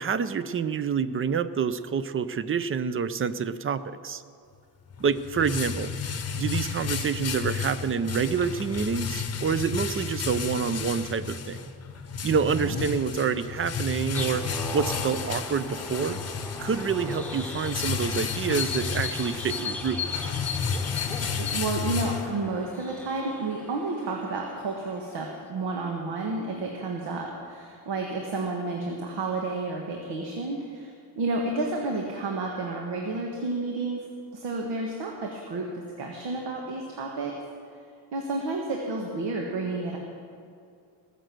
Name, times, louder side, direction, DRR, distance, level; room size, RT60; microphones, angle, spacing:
voice 1, 0.0-4.2 5.0-5.9 6.3-11.7 12.2-14.4 14.7-16.2 16.6-20.0, right 6 dB, 30° right, 14 dB, 0.5 m, -27 dB
sound 1, 4.9-22.7, left 6 dB, 35° left, 0.9 m, -32 dB
voice 2, 12.5-12.9 21.4-37.3 38.1-40.0, right 3 dB, 75° right, 1 dB, 1.6 m, -31 dB
sound 2, 14.1-25.3, left 4 dB, 5° left, 1.2 m, -37 dB
19.0 x 6.7 x 7.6 m, 2.4 s
cardioid pair, 130°, 43 cm